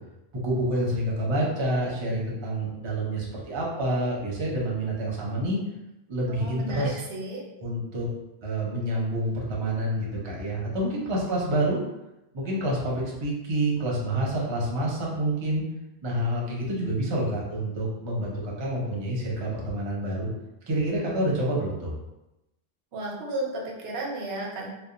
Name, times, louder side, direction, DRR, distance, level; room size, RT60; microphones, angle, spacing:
voice 1, 0.4-5.6 6.1-7.0 7.6-8.1 8.4-11.8 12.3-15.6 16.0-20.3 20.7-21.9, right 1 dB, 35° right, -4 dB, 0.6 m, -28 dB
voice 2, 6.3-7.4 22.9-24.7, right 2 dB, 90° right, -1 dB, 0.9 m, -33 dB
2.8 x 2.1 x 2.4 m, 0.93 s
omnidirectional pair, 1.0 m